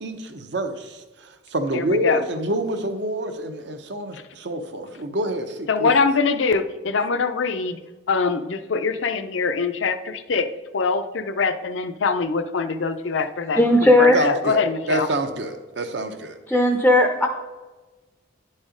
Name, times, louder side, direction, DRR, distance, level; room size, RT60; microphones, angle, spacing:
voice 1, 0.0-6.0 14.1-16.4, right 1 dB, 65° right, 7 dB, 0.8 m, -27 dB
voice 2, 1.7-2.2 5.7-7.8 8.1-10.5 10.7-15.1, left 4 dB, 75° left, 10 dB, 0.6 m, -23 dB
voice 3, 13.6-14.3 16.5-17.3, left 1 dB, 5° left, 3 dB, 0.5 m, -16 dB
10.0 x 4.3 x 5.0 m, 1.2 s
head